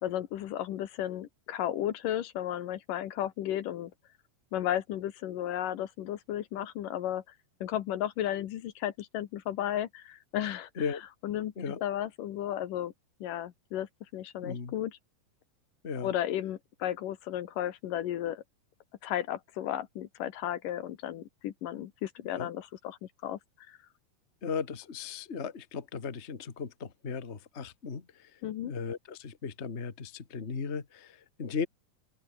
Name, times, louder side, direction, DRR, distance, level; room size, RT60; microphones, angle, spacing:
voice 1, 0.0-3.9 4.5-7.2 7.6-10.9 11.2-11.5 11.8-12.9 13.2-15.0 16.0-18.4 19.0-23.4 23.7-23.8 28.4-28.7, left 11 dB, 75° left, 2.8 m, -34 dB
voice 2, 14.4-14.7 15.8-16.1 22.3-22.5 24.4-31.7, left 5 dB, 25° left, 1.6 m, -37 dB
open air
omnidirectional pair, 4.0 m